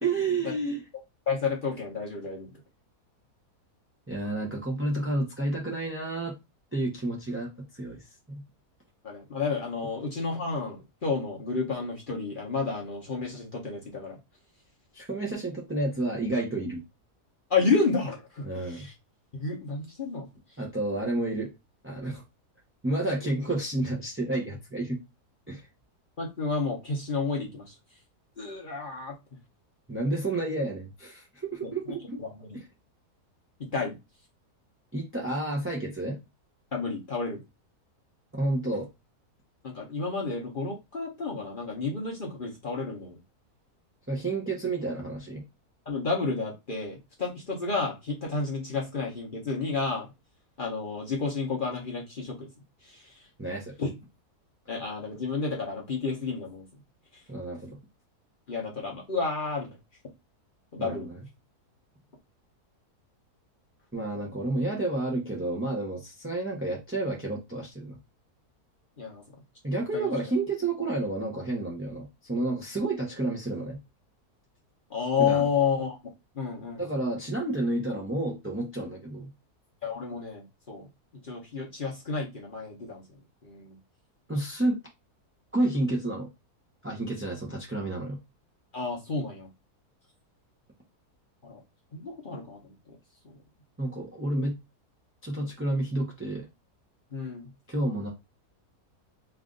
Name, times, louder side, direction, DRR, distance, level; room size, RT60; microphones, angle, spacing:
voice 1, 0.0-0.8 4.1-6.3 6.7-8.4 14.9-16.8 18.4-18.9 20.6-21.5 21.8-22.2 22.8-25.0 25.5-25.7 29.9-32.2 34.9-36.2 38.3-38.9 44.1-45.4 53.4-53.7 57.3-57.8 60.8-61.2 63.9-68.0 69.6-73.8 75.2-75.5 76.8-79.3 84.3-84.8 85.5-86.3 86.8-88.2 93.8-94.5 95.2-96.5 97.7-98.1, right 2 dB, 15° right, -2 dB, 0.4 m, -30 dB
voice 2, 1.3-2.5 9.0-14.2 17.5-18.9 19.3-20.3 26.2-27.7 28.4-29.1 31.6-31.7 32.2-32.6 33.6-34.0 36.7-37.4 39.6-43.2 45.9-50.1 50.6-52.5 52.8-53.3 53.8-53.9 54.7-56.7 58.5-59.8 60.7-61.1 69.0-69.2 69.7-70.1 74.9-76.0 76.3-76.9 79.8-80.9 81.2-83.0 83.4-83.8 88.7-89.5 91.4-91.6 91.9-93.0 93.2-93.4 97.1-97.5, left 4 dB, 40° left, -1 dB, 0.8 m, -31 dB
3.3 x 2.5 x 3.7 m, 0.23 s
omnidirectional pair, 1.7 m